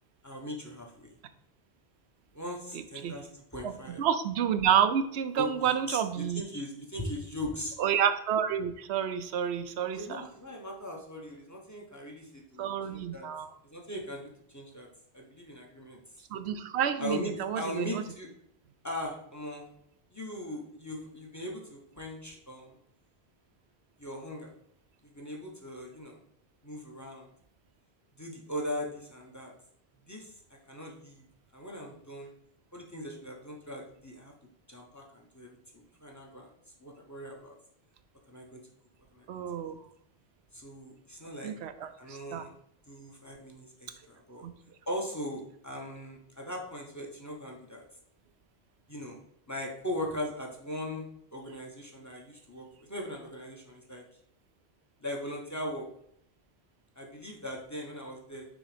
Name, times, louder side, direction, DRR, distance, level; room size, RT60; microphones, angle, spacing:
voice 1, 0.2-1.1 2.3-4.0 5.3-7.8 9.9-13.3 13.6-14.9 15.1-16.0 17.0-18.3 18.8-19.7 20.1-22.8 24.0-24.5 25.1-26.2 26.6-27.3 28.2-29.5 30.1-30.3 30.7-31.2 31.5-32.3 32.7-34.3 34.7-36.5 36.8-37.6 38.3-38.6 39.1-39.3 40.5-41.5 42.0-42.5 42.9-44.5 44.9-47.8 48.9-49.2 49.5-54.0 55.0-55.9 57.0-58.4, left 1 dB, 15° left, 0 dB, 1.0 m, -39 dB
voice 2, 2.7-3.1 3.6-6.4 7.8-10.2 12.6-13.5 16.3-18.0 39.3-39.8 41.4-42.4 44.4-44.5, right 8 dB, 90° right, 10 dB, 0.9 m, -29 dB
6.1 x 3.1 x 5.0 m, 0.71 s
omnidirectional pair, 1.1 m